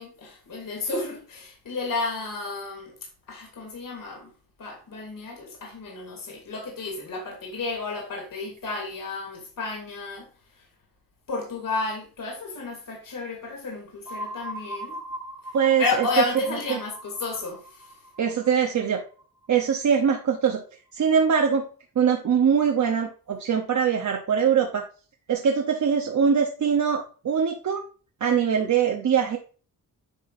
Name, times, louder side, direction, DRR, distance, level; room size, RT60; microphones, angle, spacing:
voice 1, 0.0-2.9 3.3-4.3 4.6-10.3 10.6-10.7 11.3-15.0 15.5-18.0 28.2-28.7, left 3 dB, 60° left, 2.7 m, -32 dB
sound 1, 14.0-19.7, right 1 dB, 5° right, 0.8 m, -40 dB
voice 2, 15.5-16.0 18.2-19.0 19.5-20.6 20.9-21.6 22.0-24.9 25.3-27.9 28.2-29.4, right 7 dB, 50° right, 0.8 m, -22 dB
9.8 x 6.0 x 2.5 m
wide cardioid pair, 150°, 37 cm